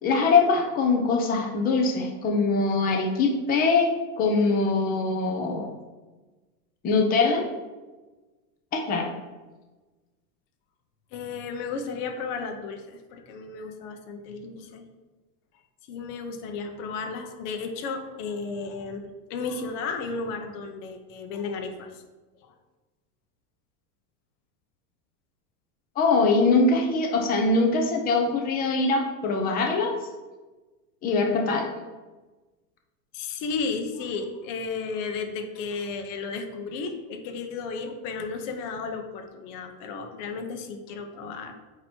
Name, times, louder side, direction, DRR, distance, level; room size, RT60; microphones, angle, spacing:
voice 1, 0.0-5.7 6.8-7.5 8.7-9.1 26.0-29.9 31.0-31.7, left 3 dB, 20° left, 1 dB, 0.6 m, -23 dB
voice 2, 11.1-14.8 15.9-19.0 19.3-22.0 33.1-41.5, left 4 dB, 50° left, 5 dB, 1.0 m, -33 dB
8.2 x 3.0 x 4.4 m, 1.2 s
supercardioid pair, 140°, 48 cm